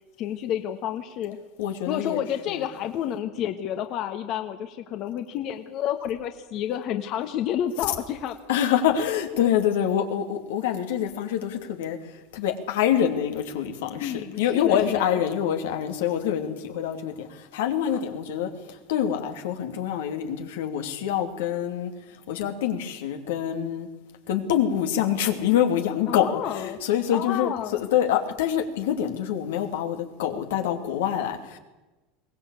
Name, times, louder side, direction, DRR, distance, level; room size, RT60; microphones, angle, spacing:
voice 1, 0.2-1.4 1.9-8.4 14.0-15.2 26.1-26.8 27.1-27.8, left 10 dB, 50° left, 7 dB, 1.4 m, -30 dB
voice 2, 1.6-2.7 8.5-12.0 12.3-21.9 22.3-23.9 24.3-31.6, left 9 dB, 90° left, 5 dB, 2.8 m, -26 dB
22.0 x 18.0 x 8.4 m, 1.1 s
supercardioid pair, 125°, 0 cm